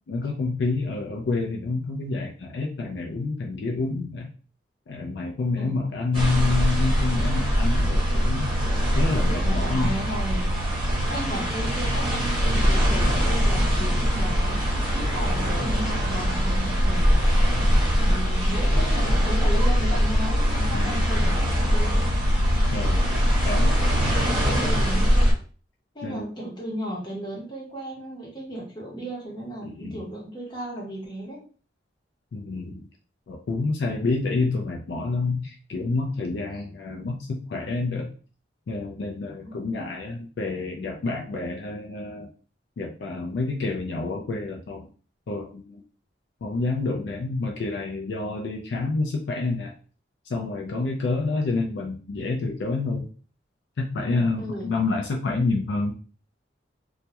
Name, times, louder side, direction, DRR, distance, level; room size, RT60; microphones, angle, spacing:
voice 1, 0.1-4.3 4.9-8.5 8.9-9.9 20.7-21.0 22.7-23.1 23.4-23.8 24.4-24.8 26.0-26.3 29.6-30.0 32.3-32.8 33.3-38.1 38.7-42.3 42.8-44.9 45.3-45.8 46.4-49.7 50.3-53.1 53.8-55.9, left 3 dB, 65° left, 1 dB, 0.3 m, -28 dB
sound 1, 6.1-25.3, equal, 30° right, 0.9 m, -22 dB
voice 2, 9.3-10.7 11.1-17.1 18.0-22.2 24.2-25.3 25.9-31.4 33.9-34.1 36.5-36.6 39.4-39.7 54.4-54.9, equal, 25° left, -4 dB, 0.9 m, -35 dB
2.2 x 2.0 x 2.8 m, 0.39 s
head